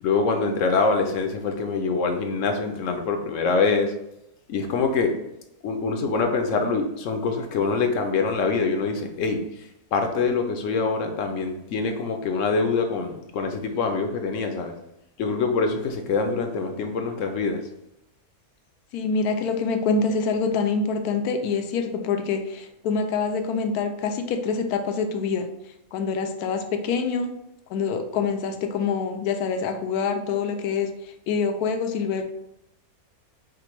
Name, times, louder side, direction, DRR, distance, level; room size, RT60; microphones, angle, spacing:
voice 1, 0.0-3.9 4.5-5.1 5.6-14.7 15.2-17.6, left 4 dB, 65° left, 5 dB, 0.9 m, -25 dB
voice 2, 18.9-25.5 25.9-27.4 27.7-30.9 31.3-32.2, left 5 dB, 85° left, 6 dB, 1.1 m, -25 dB
5.0 x 2.2 x 4.4 m, 0.85 s
omnidirectional pair, 1.6 m